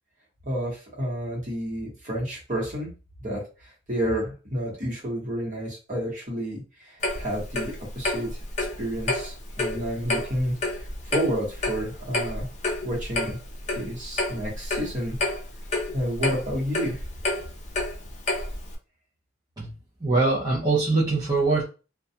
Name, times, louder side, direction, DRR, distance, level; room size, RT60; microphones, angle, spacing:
voice 1, 0.4-2.9 3.2-8.4 8.8-10.5 10.8-12.5 12.8-13.4 13.7-15.2 15.9-17.0, equal, 40° right, -3 dB, 1.1 m, -30 dB
Clock, 7.0-18.7, left 2 dB, 40° left, 0.5 m, -30 dB
voice 2, 20.0-21.6, right 3 dB, 20° right, -8 dB, 0.5 m, -22 dB
2.3 x 2.2 x 2.7 m, 0.34 s
head